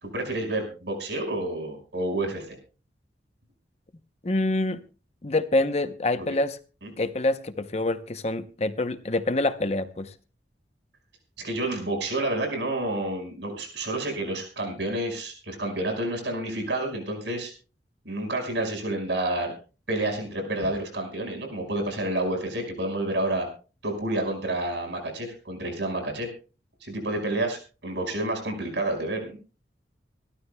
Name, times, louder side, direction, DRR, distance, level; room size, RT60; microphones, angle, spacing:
voice 1, 0.0-2.6 6.2-6.3 6.8-6.9 11.4-17.5 18.0-19.5 19.9-23.5 23.8-26.3 26.8-29.4, right 1 dB, 80° right, 4 dB, 5.3 m, -29 dB
voice 2, 4.2-4.8 5.2-6.6 7.0-10.1, left 2 dB, 35° left, 11 dB, 0.8 m, -26 dB
26.0 x 13.0 x 2.3 m, 0.35 s
head